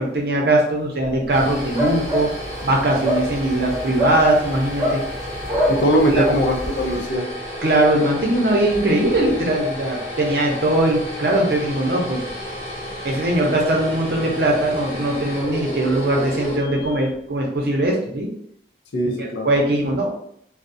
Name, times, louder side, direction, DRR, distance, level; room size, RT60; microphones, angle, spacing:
voice 1, 0.0-2.3 2.6-5.0 6.1-6.2 7.6-12.2 13.0-18.3 19.2-20.2, right 1 dB, 65° right, -1 dB, 0.6 m, -20 dB
sound 1, 1.0-17.2, equal, 35° left, 1.0 m, -32 dB
sound 2, 1.3-7.0, equal, 15° right, 0.5 m, -26 dB
voice 2, 5.7-7.2 18.9-19.5, equal, 80° left, 1 dB, 0.5 m, -20 dB
2.3 x 2.0 x 2.6 m, 0.69 s
head